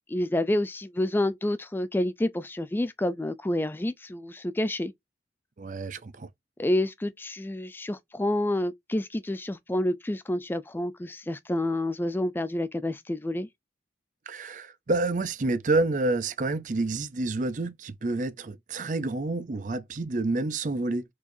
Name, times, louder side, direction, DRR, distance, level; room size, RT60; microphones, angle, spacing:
voice 1, 0.1-4.9 6.6-13.5, left 1 dB, 10° left, 0.3 m, -28 dB
voice 2, 5.6-6.3 14.3-21.0, right 2 dB, 45° right, 0.5 m, -28 dB
4.6 x 4.2 x 2.6 m
head